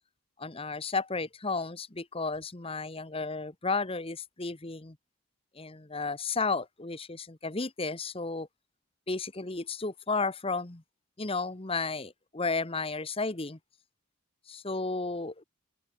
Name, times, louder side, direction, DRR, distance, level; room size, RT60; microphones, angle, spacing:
voice 1, 0.4-5.0 5.5-8.5 9.1-10.8 11.2-13.6 14.5-15.4, left 3 dB, 25° left, 1.2 m, -33 dB
open air
head